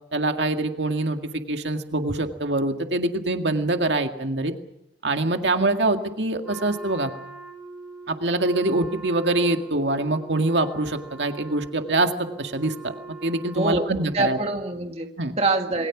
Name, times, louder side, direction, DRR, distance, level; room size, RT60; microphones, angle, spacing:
voice 1, 0.1-1.2 1.5-4.5 5.0-7.1 8.1-12.1 12.4-12.9 13.2-14.4 15.2-15.3, right 2 dB, 85° right, 5 dB, 2.0 m, -24 dB
Wind instrument woodwind instrument, 6.4-14.4, right 3 dB, 5° right, 5.5 m, -42 dB
voice 2, 13.5-15.1 15.4-15.9, right 2 dB, 35° right, 4 dB, 2.0 m, -25 dB
27.5 x 22.0 x 6.1 m, 0.82 s
head